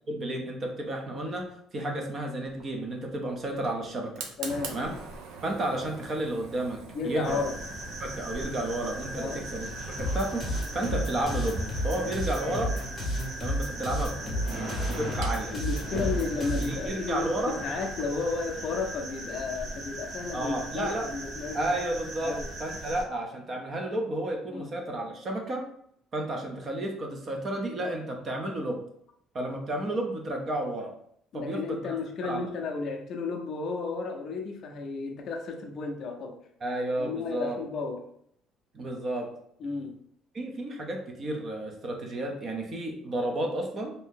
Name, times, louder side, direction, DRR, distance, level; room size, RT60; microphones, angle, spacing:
voice 1, 0.1-1.5 1.7-4.2 4.7-4.9 5.4-7.4 8.0-11.6 11.8-12.7 13.4-14.5 14.9-15.5 16.5-17.6 20.3-21.1 21.5-25.6 26.1-28.8 29.3-30.9 31.3-31.8 32.2-32.4 36.6-37.6 38.7-39.3 40.3-43.9, right 1 dB, 25° right, 2 dB, 0.5 m, -32 dB
Fire, 2.5-18.1, right 4 dB, 85° right, 0.6 m, -46 dB
voice 2, 4.4-4.8 6.9-7.6 9.2-9.4 15.5-21.7 22.2-22.5 24.5-24.7 31.3-36.4 37.0-38.1 39.6-40.0, left 4 dB, 40° left, 3 dB, 0.4 m, -33 dB
sound 1, 7.2-23.0, right 1 dB, 55° right, 0.9 m, -38 dB
sound 2, 10.0-16.8, equal, 10° left, 0.8 m, -32 dB
2.7 x 2.7 x 3.6 m, 0.68 s
cardioid pair, 175°, 0 cm